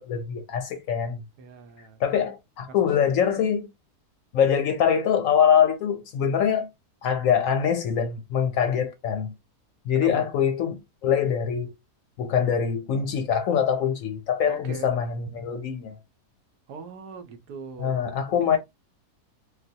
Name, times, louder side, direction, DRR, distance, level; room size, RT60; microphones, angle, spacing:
voice 1, 0.0-1.2 2.0-3.7 4.3-6.7 7.0-9.3 9.9-11.7 12.2-16.0 17.8-18.6, left 8 dB, 70° left, 0.8 m, -24 dB
voice 2, 1.4-2.3 2.7-3.4 9.9-10.3 14.5-14.9 16.7-18.6, right 4 dB, 80° right, 1.3 m, -42 dB
3.8 x 2.2 x 2.6 m
omnidirectional pair, 1.7 m